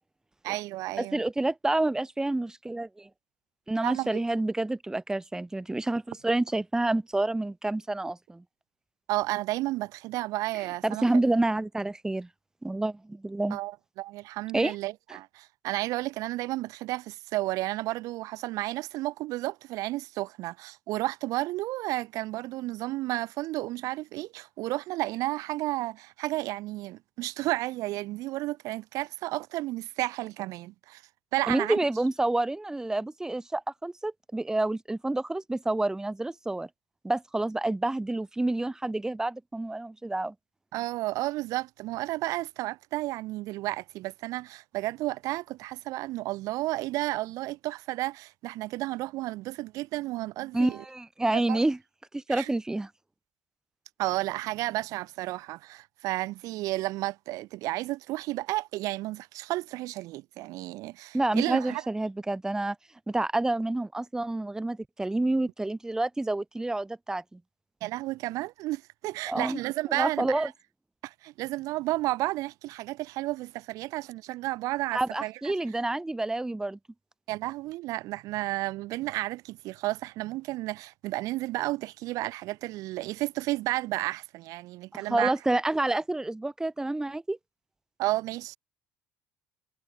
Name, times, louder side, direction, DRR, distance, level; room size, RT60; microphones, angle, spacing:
voice 1, 0.4-1.2 3.8-4.2 9.1-11.1 13.5-31.0 31.3-31.8 40.7-50.8 51.3-51.6 52.3-52.5 54.0-61.8 67.8-70.5 71.0-75.5 77.3-85.3 88.0-88.6, right 18 dB, 75° right, 2.0 m, -32 dB
voice 2, 1.0-3.1 3.7-8.4 10.8-12.3 12.6-13.6 14.5-14.8 31.5-36.7 37.0-40.3 50.5-51.8 52.1-52.9 61.1-62.8 63.1-67.4 69.3-69.6 69.9-70.5 74.9-76.8 84.9-87.4, right 2 dB, 10° right, 1.5 m, -28 dB
cardioid pair, 100°, 6 cm